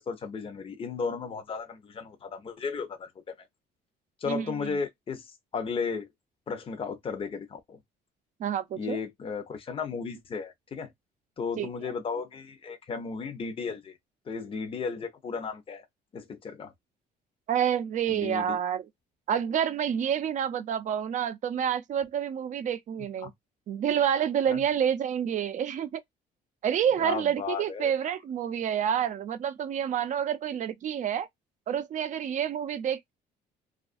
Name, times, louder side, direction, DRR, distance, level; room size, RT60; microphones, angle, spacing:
voice 1, 0.0-3.3 4.2-6.1 6.5-7.8 8.8-10.9 11.4-13.9 14.3-15.9 16.1-16.7 18.1-18.6 23.2-23.3 24.5-24.6 27.0-28.1, left 5 dB, 35° left, 0.7 m, -35 dB
voice 2, 4.2-4.8 8.4-9.0 11.6-11.9 17.5-18.9 19.3-23.3 23.7-26.0 26.6-31.3 31.7-33.1, right 9 dB, 45° right, 0.5 m, -28 dB
2.4 x 2.2 x 2.4 m
cardioid pair, 110°, 17 cm